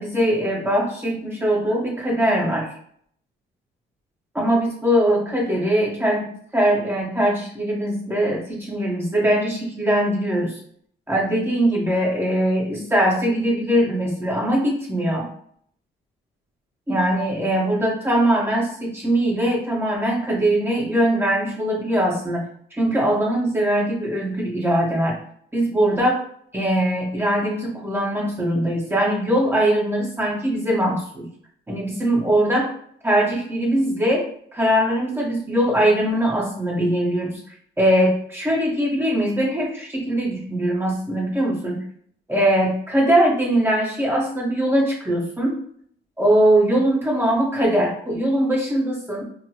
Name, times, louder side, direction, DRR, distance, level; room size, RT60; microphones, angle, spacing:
voice 1, 0.0-2.7 4.3-10.6 11.1-15.3 16.9-22.4 22.7-25.2 25.5-26.2 26.5-31.3 31.7-32.7 33.0-37.4 37.8-41.8 42.3-45.6 46.2-49.2, right 1 dB, 10° right, -3 dB, 1.2 m, -21 dB
4.1 x 2.1 x 2.9 m, 0.62 s
cardioid pair, 90°, 20 cm